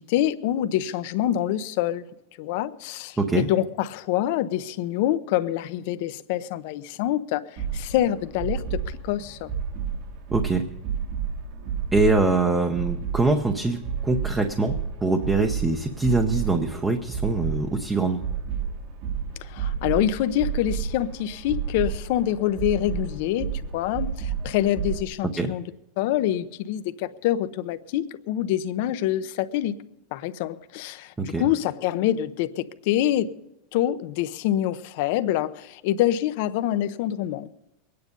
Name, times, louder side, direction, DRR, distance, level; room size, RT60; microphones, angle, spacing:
voice 1, 0.0-2.0 2.4-9.5 19.5-25.6 26.0-29.8 30.1-33.3 33.7-37.5, left 12 dB, 55° left, 0.7 m, -26 dB
voice 2, 3.2-3.5 10.3-10.6 11.9-14.7 15.0-18.2 25.4-25.5 31.2-31.5, right 3 dB, 10° right, 0.7 m, -23 dB
sound 1, 7.6-25.0, right 7 dB, 45° right, 1.5 m, -31 dB
22.0 x 9.6 x 5.3 m
supercardioid pair, 165°, 0 cm